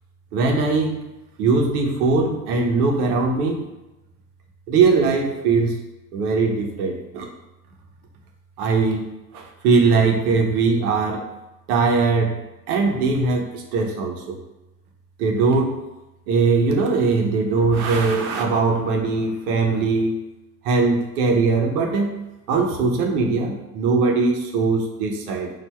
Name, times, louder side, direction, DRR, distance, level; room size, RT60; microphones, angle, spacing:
voice 1, 0.3-1.1 1.4-3.6 4.7-5.8 6.1-7.3 8.6-11.2 11.7-12.4 12.7-14.4 15.2-15.8 16.3-20.2 20.6-22.1 22.5-25.5, right 4 dB, 70° right, 1 dB, 1.1 m, -20 dB
4.3 x 2.7 x 4.4 m, 0.99 s
hypercardioid pair, 75°, 47 cm